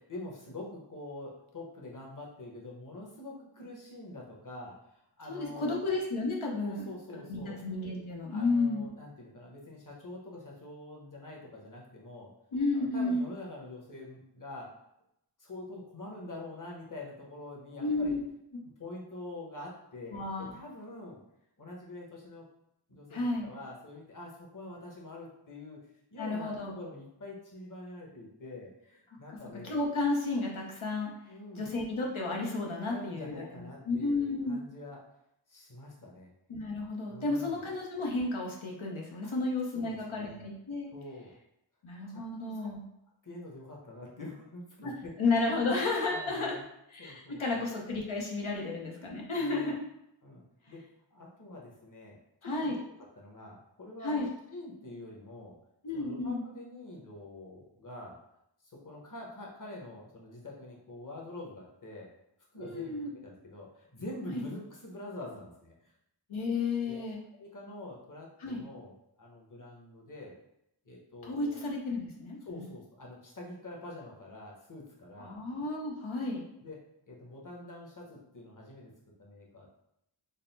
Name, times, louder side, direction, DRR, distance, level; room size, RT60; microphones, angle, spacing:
voice 1, 0.0-5.8 6.6-7.6 8.3-12.3 12.7-14.7 15.4-18.2 18.6-21.2 21.6-22.5 22.9-25.8 26.1-29.8 31.3-31.8 32.9-35.0 35.5-36.3 37.1-37.6 39.7-40.4 40.9-41.3 42.1-42.7 43.2-45.1 46.1-46.6 47.0-47.7 48.4-48.6 49.4-49.7 50.2-50.8 51.1-52.8 53.2-55.6 55.9-58.2 58.7-62.1 62.5-65.9 66.8-67.0 67.3-70.4 70.8-71.6 72.4-75.4 76.6-78.9 79.2-79.7, left 2 dB, 40° left, -2 dB, 1.1 m, -46 dB
voice 2, 5.3-6.8 7.3-8.9 12.5-13.3 17.8-18.2 20.1-20.5 23.1-23.5 26.2-26.7 29.6-31.1 31.6-33.4 33.9-34.5 36.5-40.9 41.8-42.8 44.8-44.9 45.2-46.5 46.9-49.8 52.4-52.7 54.0-54.3 55.8-56.4 62.6-63.1 64.3-64.4 66.3-67.2 68.4-68.6 71.2-72.7 75.2-76.4, left 3 dB, 90° left, -1 dB, 1.0 m, -32 dB
4.0 x 2.1 x 4.0 m, 0.79 s
wide cardioid pair, 50°, 47 cm